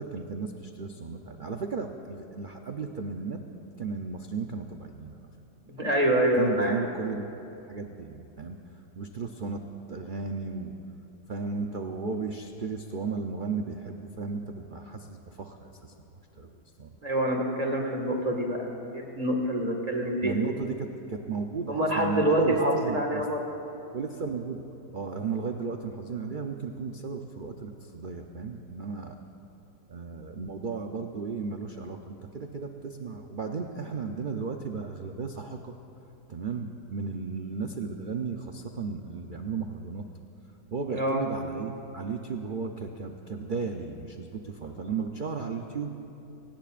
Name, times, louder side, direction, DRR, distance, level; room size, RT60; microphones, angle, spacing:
voice 1, 0.0-3.4 3.8-5.2 6.3-7.3 7.7-8.6 9.0-9.6 9.9-10.7 11.3-15.9 16.4-17.0 20.2-23.3 23.9-24.6 24.9-29.2 29.9-35.7 36.3-40.1 40.7-45.9, right 5 dB, 65° right, 4 dB, 0.5 m, -35 dB
voice 2, 5.7-6.8 17.0-20.3 21.7-23.4 40.9-41.2, right 1 dB, 25° right, 1 dB, 1.8 m, -26 dB
26.5 x 18.0 x 2.5 m, 2.8 s
omnidirectional pair, 1.8 m